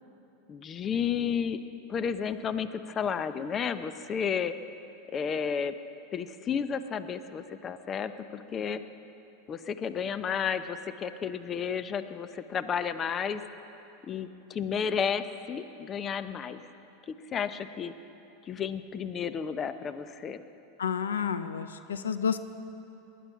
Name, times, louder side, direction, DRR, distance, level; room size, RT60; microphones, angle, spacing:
voice 1, 0.5-1.6 1.9-4.5 5.1-5.7 6.1-8.8 9.5-13.4 14.0-16.6 17.1-17.9 18.5-20.4, left 7 dB, 30° left, 12 dB, 0.7 m, -32 dB
voice 2, 20.8-22.4, left 7 dB, 90° left, 11 dB, 0.6 m, -30 dB
20.0 x 11.0 x 5.7 m, 2.9 s
hypercardioid pair, 100°, 0 cm